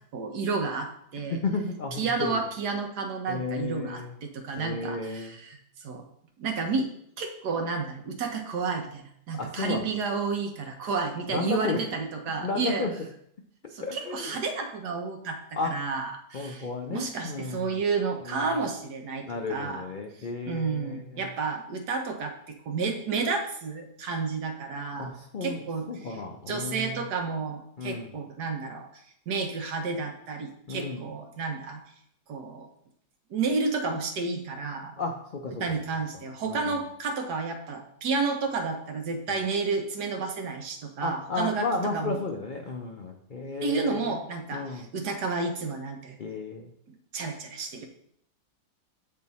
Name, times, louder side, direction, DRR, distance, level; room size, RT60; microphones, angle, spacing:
voice 1, 0.1-1.4 2.0-6.0 6.4-6.9 7.2-12.9 13.7-15.4 15.6-19.8 20.5-25.1 25.4-26.2 26.5-28.9 29.3-31.8 32.3-32.7 33.3-34.9 35.5-41.7 41.9-42.2 43.6-46.2 47.1-47.9, right 4 dB, 75° right, 4 dB, 1.5 m, -31 dB
voice 2, 1.3-2.4 3.3-4.2 4.6-5.4 9.4-9.9 11.3-11.8 12.4-12.9 13.8-14.3 15.5-15.7 16.3-17.8 18.2-18.7 19.2-21.3 25.0-25.6 25.9-27.0 27.8-28.1 30.7-31.0 35.0-35.6 36.5-36.8 39.3-39.4 41.0-44.2 44.5-44.9 46.2-46.7, left 3 dB, 70° left, 2 dB, 0.4 m, -33 dB
7.6 x 4.4 x 4.1 m, 0.71 s
omnidirectional pair, 1.8 m